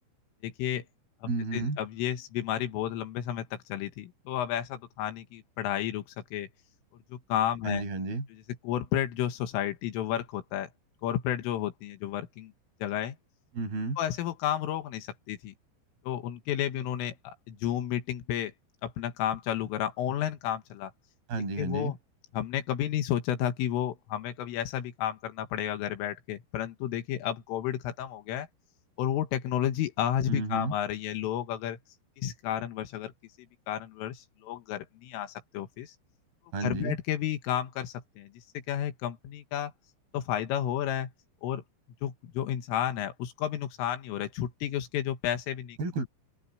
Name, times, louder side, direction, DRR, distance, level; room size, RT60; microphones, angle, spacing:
voice 1, 0.4-0.9 1.2-6.0 6.3-6.5 7.1-7.8 8.6-10.7 11.0-12.5 12.8-13.2 14.0-15.5 16.1-18.5 18.8-20.9 21.6-22.0 22.3-28.5 29.0-31.8 32.2-33.1 33.7-35.9 36.6-39.7 40.1-41.1 41.4-41.6 42.0-45.8, left 11 dB, 80° left, 4.3 m, -32 dB
voice 2, 1.2-1.8 7.6-8.3 13.5-14.0 21.3-21.9 30.3-30.7 36.5-37.0 45.8-46.1, right 3 dB, 50° right, 7.7 m, -32 dB
omnidirectional pair, 5.8 m